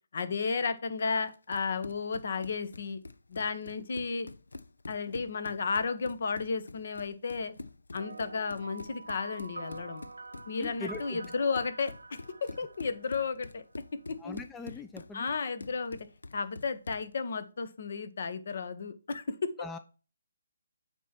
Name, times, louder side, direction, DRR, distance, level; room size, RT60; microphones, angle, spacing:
voice 1, 0.1-3.0 3.3-4.3 4.9-7.5 7.9-10.0 10.5-13.6 14.1-14.4 15.1-16.0 16.3-19.5, left 5 dB, 60° left, 11 dB, 1.0 m, -33 dB
Run, 1.3-17.1, left 3 dB, 85° left, 0.5 m, -46 dB
sound 1, 7.9-13.7, right 3 dB, 90° right, 0.5 m, -46 dB
voice 2, 10.6-11.2 14.2-15.3 19.6-19.8, left 4 dB, 10° left, 8 dB, 0.4 m, -41 dB
8.1 x 3.0 x 5.8 m, 0.34 s
figure-of-eight pair, 150°, 0 cm